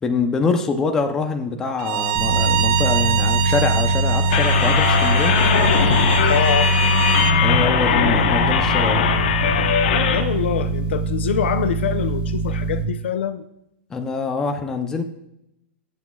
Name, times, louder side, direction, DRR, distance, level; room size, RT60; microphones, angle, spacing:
voice 1, 0.0-5.3 7.4-9.1 13.9-15.0, left 4 dB, 10° left, 4 dB, 0.6 m, -24 dB
Bowed string instrument, 1.8-7.4, right 12 dB, 30° right, 0.5 m, -25 dB
sound 1, 2.1-12.8, right 2 dB, 15° right, 4.7 m, -22 dB
sound 2, 4.3-10.2, left 7 dB, 50° left, 1.1 m, -20 dB
voice 2, 6.3-6.8 10.1-13.5, left 8 dB, 70° left, 11 dB, 0.7 m, -24 dB
21.0 x 8.2 x 2.4 m, 0.82 s
supercardioid pair, 175°, 6 cm